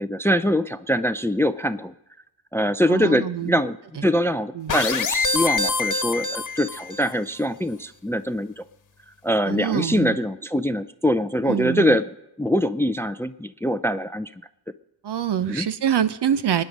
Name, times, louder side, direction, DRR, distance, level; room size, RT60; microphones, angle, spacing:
voice 1, 0.0-1.9 2.5-3.8 4.0-8.6 9.2-12.0 12.4-14.3 15.5-15.7, equal, 5° left, 13 dB, 0.5 m, -23 dB
voice 2, 2.9-3.6 4.0-4.1 4.5-4.8 9.4-10.2 11.5-12.0 15.0-16.6, right 9 dB, 60° right, 13 dB, 1.0 m, -25 dB
sound 1, 4.7-7.1, left 4 dB, 40° left, 1.3 m, -25 dB
23.0 x 10.0 x 5.4 m, 0.87 s
cardioid pair, 90°, 46 cm